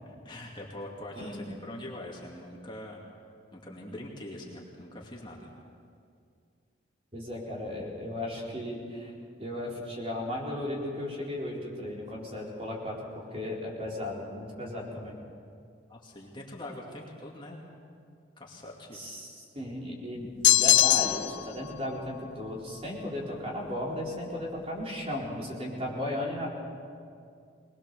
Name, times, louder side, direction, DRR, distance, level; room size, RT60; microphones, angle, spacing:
voice 1, 0.1-3.0 3.5-5.5 15.9-17.6 18.4-19.0, left 1 dB, 25° left, -2 dB, 2.4 m, -43 dB
voice 2, 1.2-1.5 7.1-9.1 9.4-15.2 18.9-26.5, left 1 dB, 30° right, -3 dB, 4.3 m, -35 dB
sound 1, 20.4-21.4, left 15 dB, 75° left, 0.7 m, -21 dB
22.0 x 21.0 x 6.9 m, 2.3 s
head